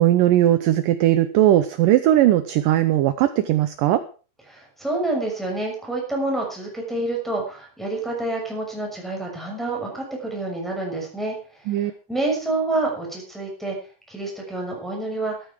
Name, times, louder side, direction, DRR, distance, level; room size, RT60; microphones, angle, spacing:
voice 1, 0.0-4.0 11.7-11.9, right 13 dB, 75° right, 11 dB, 2.2 m, -18 dB
voice 2, 4.5-11.4 11.8-13.8 14.1-15.3, right 2 dB, ahead, -2 dB, 5.8 m, -28 dB
15.0 x 13.0 x 4.7 m, 0.37 s
omnidirectional pair, 4.5 m